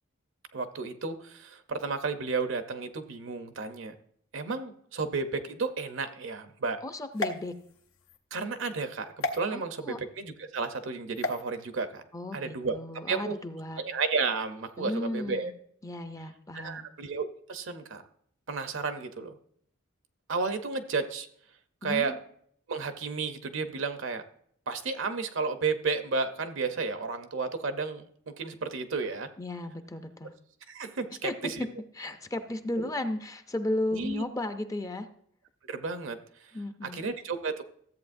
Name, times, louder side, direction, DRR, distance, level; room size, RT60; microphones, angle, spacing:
voice 1, 0.5-3.9 4.3-6.8 8.3-12.0 12.3-12.8 13.1-13.4 13.8-15.5 16.5-18.0 18.5-19.4 20.3-21.3 21.8-22.2 22.7-24.2 24.7-28.1 28.4-29.3 30.7-31.6 32.8-32.9 33.9-34.2 35.7-36.5 36.8-37.6, right 4 dB, 65° right, 9 dB, 0.7 m, -32 dB
voice 2, 6.8-7.5 9.5-10.0 12.1-13.8 14.8-15.5 15.8-16.9 21.8-22.2 29.4-30.3 31.2-31.3 32.0-35.1 36.5-37.0, left 1 dB, 15° left, 8 dB, 0.5 m, -34 dB
sound 1, 7.1-8.2 9.2-9.4 11.2-11.4, left 2 dB, 85° left, 0.8 m, -33 dB
13.5 x 7.9 x 2.6 m, 0.64 s
head